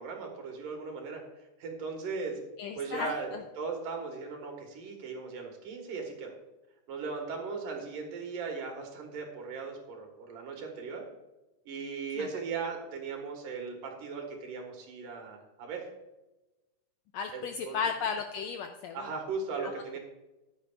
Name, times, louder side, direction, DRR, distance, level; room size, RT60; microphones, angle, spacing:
voice 1, 0.0-2.4 2.7-6.3 6.9-11.0 11.7-15.9 17.3-17.8 18.9-20.0, right 4 dB, 85° right, 2 dB, 3.3 m, -38 dB
voice 2, 2.6-3.1 17.1-19.1 19.6-19.7, left 6 dB, 90° left, 5 dB, 1.5 m, -34 dB
14.5 x 10.0 x 2.4 m, 1.0 s
omnidirectional pair, 3.7 m